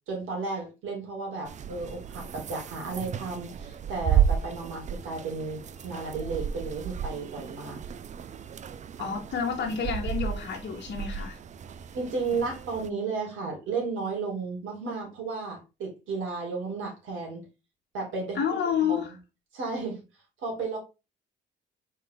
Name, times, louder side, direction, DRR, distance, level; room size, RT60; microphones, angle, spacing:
voice 1, 0.1-7.8 9.0-9.1 11.9-17.4 17.9-18.4 18.7-19.2 19.5-20.0 20.4-20.8, right 4 dB, 80° right, 2.4 m, -33 dB
sound 1, 1.5-12.9, right 8 dB, 35° right, 0.4 m, -32 dB
voice 2, 9.0-11.4 18.3-19.1, left 7 dB, 60° left, 1.3 m, -29 dB
4.1 x 3.7 x 3.4 m
cardioid pair, 90°, 20 cm